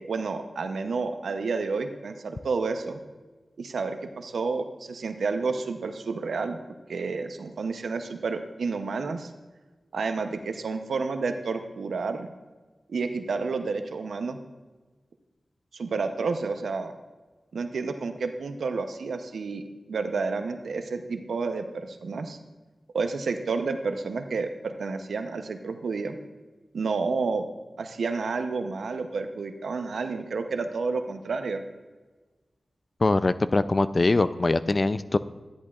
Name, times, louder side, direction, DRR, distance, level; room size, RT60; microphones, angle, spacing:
voice 1, 0.0-3.0 3.6-6.6 6.9-9.3 9.9-12.3 12.9-14.4 15.7-16.9 17.5-19.6 19.9-22.4 22.9-26.2 26.7-27.4 27.8-31.6, right 4 dB, 90° right, 7 dB, 0.7 m, -30 dB
voice 2, 33.0-35.2, left 2 dB, 40° left, 14 dB, 0.4 m, -22 dB
13.5 x 10.5 x 2.4 m, 1.3 s
cardioid pair, 65°, 0 cm